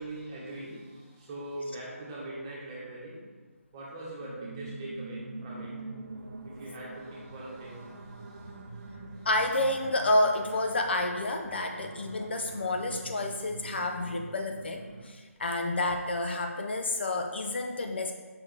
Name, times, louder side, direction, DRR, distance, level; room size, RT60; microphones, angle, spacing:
voice 1, 0.0-3.2 3.7-5.7 6.4-9.3 11.5-11.9, right 1 dB, 15° right, -6 dB, 1.3 m, -42 dB
sound 1, 4.2-15.1, right 3 dB, 75° right, 0.9 m, -44 dB
voice 2, 9.2-18.1, left 2 dB, 45° left, 4 dB, 0.5 m, -29 dB
6.3 x 5.8 x 3.3 m, 1.4 s
figure-of-eight pair, 170°, 8 cm